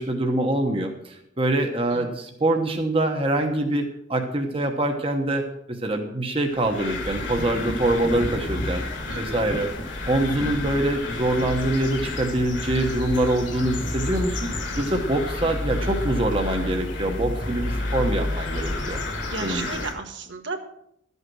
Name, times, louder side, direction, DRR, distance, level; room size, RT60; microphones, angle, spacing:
voice 1, 0.0-5.4 5.7-8.8 9.2-9.7 10.1-14.5 14.8-19.0 19.4-19.7, right 1 dB, 30° right, 3 dB, 1.1 m, -24 dB
sound 1, 6.5-19.9, left 2 dB, 60° left, 2.1 m, -30 dB
voice 2, 9.1-9.6 15.8-15.9 19.3-20.6, right 4 dB, 65° right, 5 dB, 1.4 m, -34 dB
12.5 x 8.2 x 6.2 m, 0.75 s
head